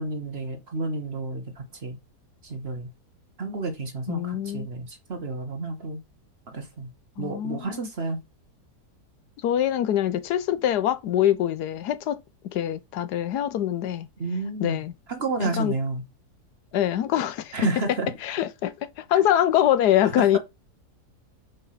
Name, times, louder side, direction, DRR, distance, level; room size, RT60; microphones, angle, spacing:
voice 1, 0.0-2.0 2.4-2.9 3.4-6.0 6.5-6.9 7.2-8.2 14.2-16.0 17.5-18.1 20.0-20.4, right 3 dB, 40° right, 1.2 m, -31 dB
voice 2, 4.1-4.7 7.2-7.9 9.4-12.2 12.4-14.1 14.6-14.9 15.4-15.7 16.7-17.6 18.2-20.4, left 11 dB, 75° left, 1.2 m, -24 dB
5.2 x 4.3 x 5.7 m
omnidirectional pair, 1.8 m